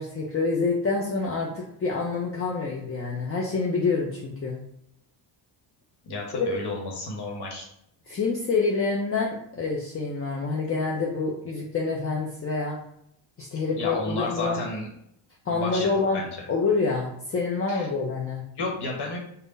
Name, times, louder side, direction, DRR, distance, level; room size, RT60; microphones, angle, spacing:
voice 1, 0.0-4.6 6.3-6.5 8.1-12.8 13.4-14.6 15.5-16.2 16.5-18.4, left 4 dB, 30° left, -2 dB, 0.7 m, -27 dB
voice 2, 6.0-7.7 13.5-14.9 15.5-15.9 16.1-16.3 17.7-17.9 18.5-19.2, left 3 dB, 55° left, -1 dB, 1.1 m, -32 dB
3.5 x 2.2 x 4.0 m, 0.75 s
cardioid pair, 80°, 47 cm